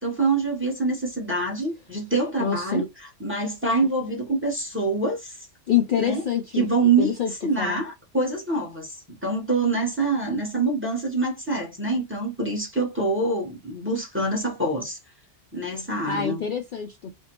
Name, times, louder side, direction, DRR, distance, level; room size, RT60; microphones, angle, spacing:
voice 1, 0.0-5.5 6.0-6.2 6.5-7.1 7.4-15.0 15.5-16.4, right 3 dB, 10° right, 0.8 m, -25 dB
voice 2, 2.4-2.8 5.7-7.3 7.6-7.8 16.0-17.1, left 8 dB, 60° left, 0.6 m, -26 dB
2.6 x 2.1 x 2.9 m
omnidirectional pair, 1.2 m